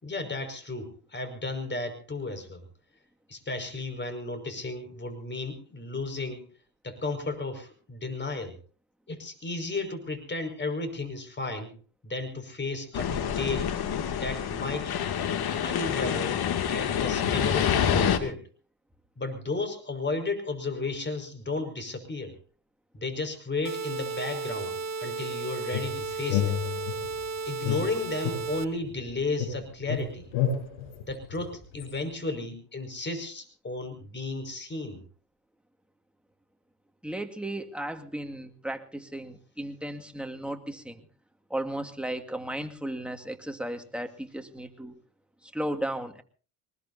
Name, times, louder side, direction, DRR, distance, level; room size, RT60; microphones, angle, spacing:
voice 1, 0.0-2.6 3.3-6.5 6.8-8.6 9.1-11.8 12.0-13.8 14.1-14.9 15.6-18.5 19.2-22.4 22.9-26.6 27.4-30.3 31.0-35.0, left 3 dB, 25° left, 8 dB, 5.6 m, -34 dB
sound 1, 12.9-18.2, left 8 dB, 55° left, 2.5 m, -27 dB
sound 2, 23.6-28.6, right 4 dB, 35° right, 1.9 m, -34 dB
sound 3, 25.7-27.2 27.6-29.1 29.4-31.9, left 8 dB, 75° left, 7.1 m, -31 dB
voice 2, 37.0-41.1 41.5-45.0 45.4-46.2, right 1 dB, ahead, 4 dB, 2.1 m, -35 dB
24.0 x 20.0 x 2.8 m, 0.37 s
supercardioid pair, 75°, 45 cm